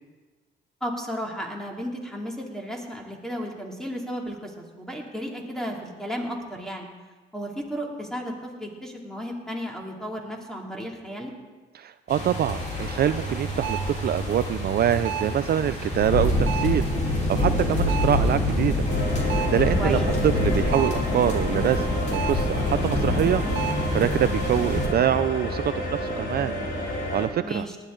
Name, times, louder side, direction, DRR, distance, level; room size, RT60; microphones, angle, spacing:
voice 1, 0.8-6.9 7.3-11.3 19.8-20.1 27.4-27.7, equal, 5° left, 0 dB, 2.8 m, -34 dB
voice 2, 11.7-18.8 19.1-26.5 27.1-27.7, right 10 dB, 55° right, 12 dB, 0.4 m, -25 dB
sound 1, 12.1-24.9, left 1 dB, 35° left, 3.6 m, -26 dB
sound 2, 13.6-14.0 15.0-15.4 16.5-16.9 17.9-18.2 19.3-19.7 20.7-21.1 22.1-22.5 23.5-23.9, right 8 dB, 85° right, 0.8 m, -32 dB
sound 3, 18.9-27.3, equal, 55° left, 3.9 m, -30 dB
18.5 x 11.0 x 3.9 m, 1.3 s
cardioid pair, 90°, 20 cm